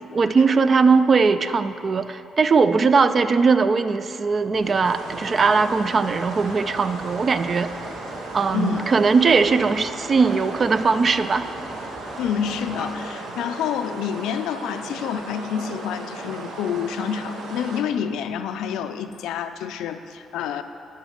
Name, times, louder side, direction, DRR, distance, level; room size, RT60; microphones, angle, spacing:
voice 1, 0.1-7.7 8.3-11.5, right 4 dB, 40° right, 12 dB, 0.4 m, -19 dB
sound 1, 4.5-13.2, left 1 dB, 5° left, 0.7 m, -40 dB
sound 2, 4.8-17.8, right 3 dB, 80° right, 0.9 m, -36 dB
voice 2, 8.5-8.9 12.2-20.6, left 8 dB, 90° left, 9 dB, 0.4 m, -28 dB
9.3 x 5.3 x 6.5 m, 2.7 s
cardioid pair, 90°, 0 cm